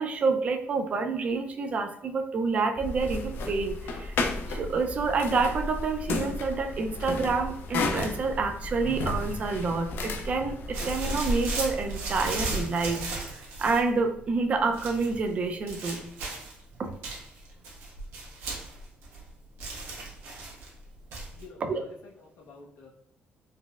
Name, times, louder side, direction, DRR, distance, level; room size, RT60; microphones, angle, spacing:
voice 1, 0.0-4.2 4.5-13.0 13.3-16.0 16.8-16.9 21.6-21.8, right 4 dB, 35° right, 5 dB, 0.3 m, -28 dB
sound 1, 2.7-12.5, left 2 dB, 65° left, 0.3 m, -33 dB
sound 2, 10.7-13.9 14.7-15.2 15.7-16.6 17.0-19.3 19.6-20.7 21.1-21.4, right 3 dB, 80° right, 0.9 m, -36 dB
voice 2, 21.3-22.9, left 3 dB, 90° left, -2 dB, 0.7 m, -49 dB
4.0 x 2.0 x 2.3 m, 0.70 s
cardioid pair, 145°, 4 cm